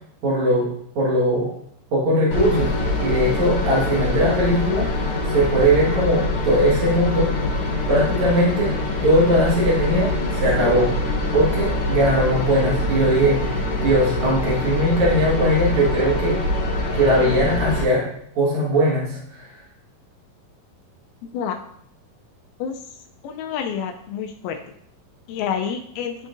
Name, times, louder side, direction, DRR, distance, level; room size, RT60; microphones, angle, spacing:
voice 1, 0.2-0.7 1.0-1.5 1.9-2.7 3.0-7.3 7.9-10.1 10.4-10.9 11.3-16.4 16.9-18.1 18.4-19.5, equal, 60° right, -5 dB, 2.6 m, -20 dB
sound 1, 2.3-17.8, left 2 dB, 55° left, 2.1 m, -24 dB
voice 2, 21.2-21.6 22.6-22.8 23.2-24.6 25.3-26.2, left 7 dB, 85° left, 4 dB, 2.4 m, -28 dB
11.0 x 3.8 x 2.5 m, 0.67 s
omnidirectional pair, 4.2 m